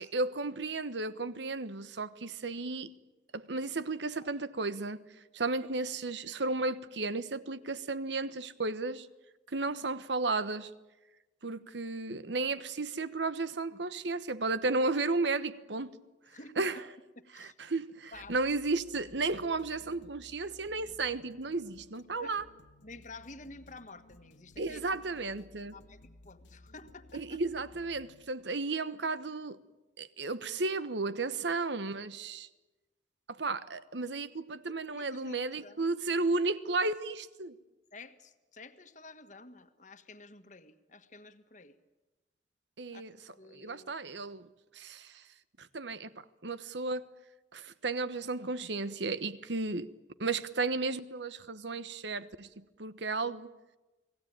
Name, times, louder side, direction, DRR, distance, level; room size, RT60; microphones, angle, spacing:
voice 1, 0.0-2.9 3.3-5.0 5.3-9.1 9.5-10.7 11.4-15.9 16.6-16.8 17.3-22.4 24.6-25.7 27.1-29.6 30.0-32.5 33.3-37.5 42.8-43.1 43.5-45.2 45.6-47.0 47.5-49.9 50.2-53.5, right 3 dB, 75° right, 1.1 m, -34 dB
voice 2, 16.3-16.7 17.2-17.5 18.1-18.4 22.2-22.4 22.8-25.0 25.7-27.4 34.7-35.9 37.9-41.8 42.9-43.0 43.4-43.9, left 3 dB, 45° left, 1.6 m, -51 dB
sound 1, 18.1-28.2, left 1 dB, 90° left, 1.2 m, -58 dB
29.5 x 19.0 x 8.9 m
head